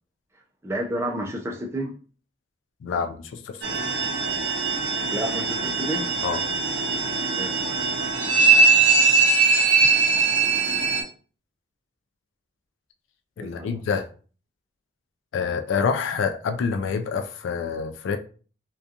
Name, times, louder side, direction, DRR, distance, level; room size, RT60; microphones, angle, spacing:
voice 1, 0.6-1.9 5.1-6.1 7.3-8.0 13.4-13.8, equal, 15° right, 0.4 m, -31 dB
voice 2, 2.8-3.6 6.2-6.4 13.4-14.1 15.3-18.2, left 5 dB, 80° left, 0.3 m, -27 dB
sound 1, 3.6-11.0, right 4 dB, 65° right, 0.6 m, -21 dB
2.7 x 2.3 x 2.4 m
head